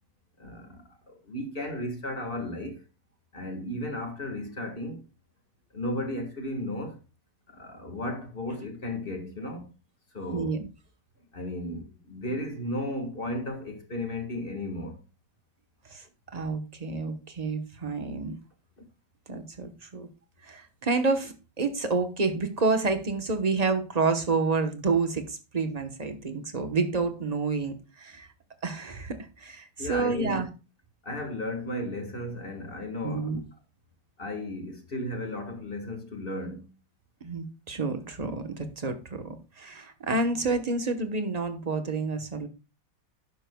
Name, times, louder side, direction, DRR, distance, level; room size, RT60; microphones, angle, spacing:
voice 1, 0.4-2.8 3.3-5.0 5.7-7.0 7.5-9.7 10.1-10.5 11.3-15.0 29.8-30.4 31.0-33.3 34.2-36.7, left 1 dB, 30° left, 1.6 m, -34 dB
voice 2, 10.3-10.7 15.9-16.0 16.3-18.4 19.3-20.1 20.4-28.3 28.6-30.5 33.0-33.4 37.2-42.5, right 4 dB, 30° right, 0.7 m, -29 dB
11.5 x 9.7 x 2.2 m
omnidirectional pair, 2.2 m